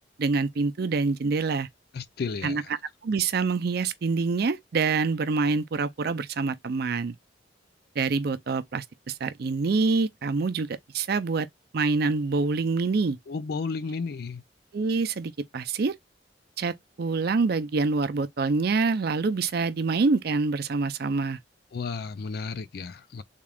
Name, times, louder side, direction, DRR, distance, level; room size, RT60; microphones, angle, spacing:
voice 1, 0.2-1.7 2.4-2.6 3.0-7.1 8.0-11.5 11.7-13.2 14.7-15.9 16.6-21.4, right 4 dB, 55° right, 0.4 m, -26 dB
voice 2, 1.9-2.7 13.3-14.4 21.7-23.2, left 4 dB, 55° left, 0.4 m, -33 dB
3.6 x 2.4 x 3.3 m
head